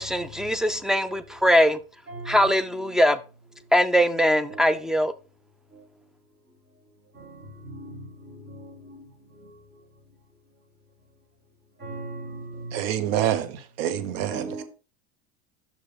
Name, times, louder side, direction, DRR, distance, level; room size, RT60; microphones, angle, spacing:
voice 1, 0.0-1.8 2.3-3.2 3.7-5.1, equal, ahead, 0.6 m, -21 dB
voice 2, 2.1-3.0 4.5-4.8 7.1-9.0 9.4-9.5 11.8-12.8 14.3-14.6, right 2 dB, 35° right, 5.0 m, -39 dB
voice 3, 12.7-14.6, right 11 dB, 70° right, 1.2 m, -27 dB
6.2 x 5.4 x 5.2 m
supercardioid pair, 100°, 30 cm